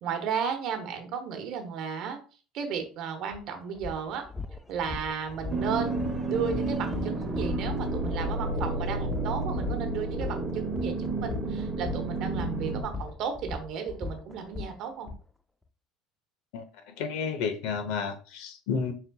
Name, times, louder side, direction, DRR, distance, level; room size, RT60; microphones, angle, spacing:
voice 1, 0.0-2.2 2.5-4.2 4.7-15.1, right 6 dB, 55° right, 1.0 m, -34 dB
sound 1, 3.3-3.4 3.8-15.2, left 3 dB, 5° left, 0.3 m, -38 dB
sound 2, 5.5-12.8, right 2 dB, 20° right, 1.0 m, -31 dB
voice 2, 16.5-18.9, left 5 dB, 75° left, 0.8 m, -32 dB
4.3 x 3.9 x 2.3 m
cardioid pair, 145°, 0 cm